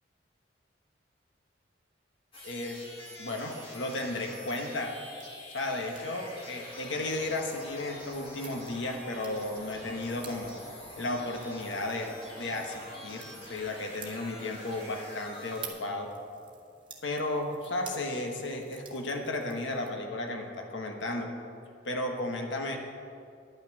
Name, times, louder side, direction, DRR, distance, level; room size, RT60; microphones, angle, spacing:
sound 1, 2.3-15.7, left 1 dB, 30° left, 1.9 m, -46 dB
voice 1, 2.4-2.8 3.2-4.9 5.5-10.6 11.0-12.1 12.4-16.1 17.0-21.3 21.8-22.8, left 2 dB, 90° left, 2 dB, 1.2 m, -34 dB
sound 2, 4.7-19.9, right 6 dB, 25° right, 1.2 m, -52 dB
10.5 x 6.0 x 8.8 m, 2.4 s
head